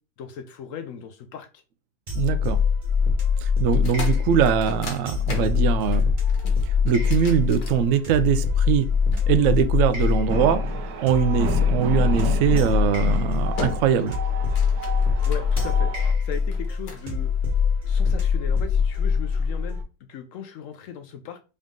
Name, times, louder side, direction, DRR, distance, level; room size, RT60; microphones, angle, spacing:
voice 1, 0.2-1.6 15.3-17.3 17.8-19.8 20.1-21.4, left 8 dB, 85° left, 7 dB, 0.7 m, -37 dB
sound 1, 2.1-19.8, left 6 dB, 30° right, 1.2 m, -23 dB
voice 2, 2.1-2.6 3.4-6.1 6.8-8.9 9.3-10.6 11.0-14.2, right 8 dB, 90° right, 11 dB, 0.6 m, -22 dB
sound 2, 3.7-8.4 9.1-10.4 12.2-12.5 13.0-13.2 13.6-14.1 14.4-16.0 16.5-17.1, left 4 dB, 70° left, 1.8 m, -37 dB
sound 3, 10.3-16.1, right 6 dB, 65° right, 1.1 m, -33 dB
4.0 x 3.6 x 3.6 m, 0.33 s
omnidirectional pair, 2.0 m